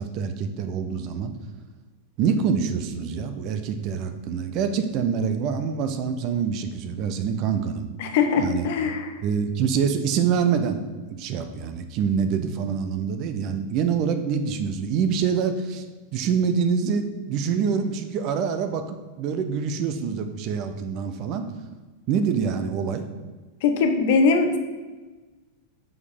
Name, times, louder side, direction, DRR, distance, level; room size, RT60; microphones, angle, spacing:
voice 1, 0.0-1.3 2.2-7.9 8.4-8.7 9.2-10.8 11.1-15.9 16.1-21.5 22.1-23.1, right 6 dB, 40° right, 8 dB, 0.6 m, -25 dB
voice 2, 8.0-9.2 23.6-24.6, left 4 dB, 50° left, 6 dB, 0.8 m, -21 dB
5.4 x 4.7 x 5.3 m, 1.3 s
figure-of-eight pair, 90°, 0 cm